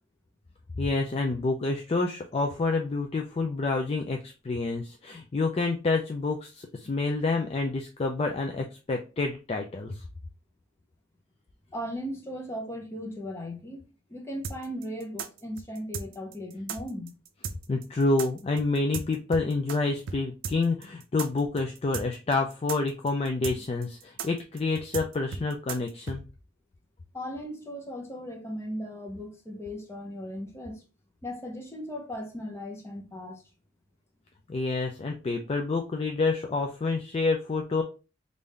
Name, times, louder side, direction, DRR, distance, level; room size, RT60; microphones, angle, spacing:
voice 1, 0.8-10.0 17.7-26.2 34.5-37.8, left 3 dB, 30° left, 0.3 m, -28 dB
voice 2, 11.7-17.1 27.1-30.8 31.2-33.4, equal, 15° left, 0.8 m, -37 dB
sound 1, 14.4-19.8 20.1-20.2 20.4-26.2, right 5 dB, 70° right, 0.5 m, -36 dB
3.6 x 2.6 x 3.2 m
head